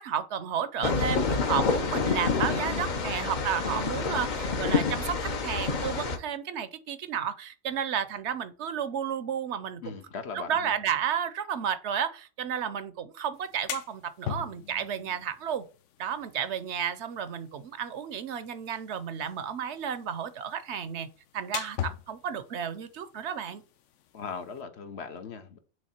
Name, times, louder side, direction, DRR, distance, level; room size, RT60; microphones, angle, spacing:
voice 1, 0.0-9.9 10.5-15.6 16.0-21.1 21.3-23.6, right 8 dB, 70° right, 0.9 m, -32 dB
sound 1, 0.8-6.2, left 4 dB, 45° left, 0.8 m, -28 dB
voice 2, 2.4-3.8 9.8-10.7 24.1-25.6, left 5 dB, 65° left, 1.1 m, -40 dB
sound 2, 13.3-24.6, left 10 dB, 90° left, 1.0 m, -43 dB
6.4 x 3.4 x 4.3 m
omnidirectional pair, 1.2 m